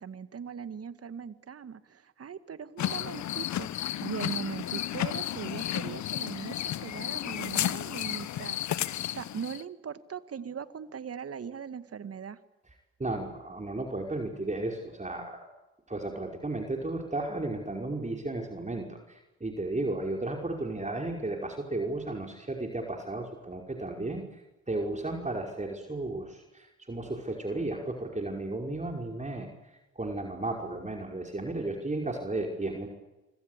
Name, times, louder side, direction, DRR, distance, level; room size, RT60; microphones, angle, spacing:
voice 1, 0.0-12.4, right 7 dB, 50° right, 13 dB, 2.1 m, -40 dB
sound 1, 2.8-9.6, left 12 dB, 60° left, 1.2 m, -33 dB
voice 2, 13.0-15.5 15.9-29.5 30.0-32.9, right 2 dB, 20° right, 2 dB, 5.5 m, -34 dB
26.0 x 25.5 x 8.4 m, 1.0 s
hypercardioid pair, 40°, 32 cm